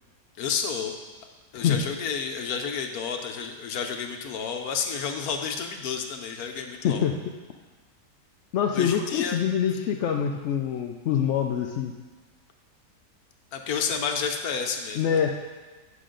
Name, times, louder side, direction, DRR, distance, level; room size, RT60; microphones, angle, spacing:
voice 1, 0.4-0.9 1.5-7.0 8.7-9.4 13.5-15.2, left 6 dB, 70° left, 4 dB, 1.1 m, -30 dB
voice 2, 6.8-7.2 8.5-11.9 14.9-15.5, left 8 dB, 85° left, 3 dB, 0.6 m, -25 dB
9.5 x 6.1 x 3.8 m, 1.3 s
omnidirectional pair, 1.8 m